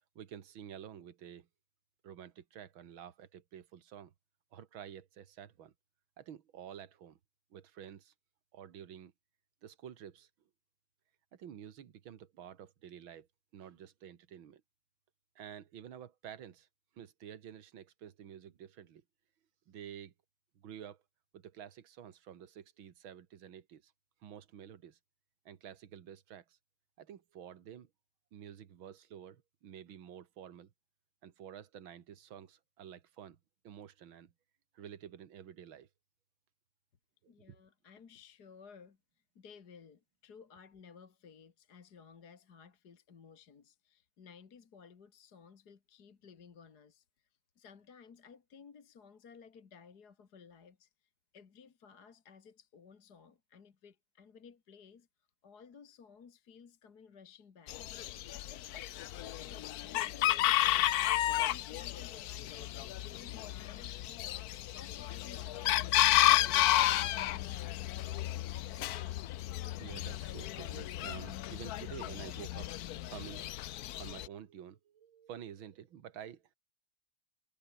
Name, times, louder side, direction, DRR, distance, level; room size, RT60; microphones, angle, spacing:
voice 1, 0.2-1.5 2.0-4.1 4.5-5.7 6.2-7.2 7.5-8.1 8.5-9.1 9.6-10.3 11.3-13.3 13.5-14.6 15.4-16.7 16.9-19.0 19.7-20.1 20.6-21.0 21.3-23.9 24.2-25.0 25.5-26.6 27.0-27.9 28.3-30.7 31.2-33.4 33.6-34.3 34.7-35.9 37.2-37.6 69.8-73.5 73.9-76.6, right 9 dB, 80° right, 2.3 m, -50 dB
voice 2, 37.3-57.8 58.5-67.9 68.7-69.0, left 6 dB, 55° left, 2.3 m, -57 dB
Chicken rooster, 57.7-74.3, left 14 dB, 70° left, 0.9 m, -32 dB
omnidirectional pair, 2.2 m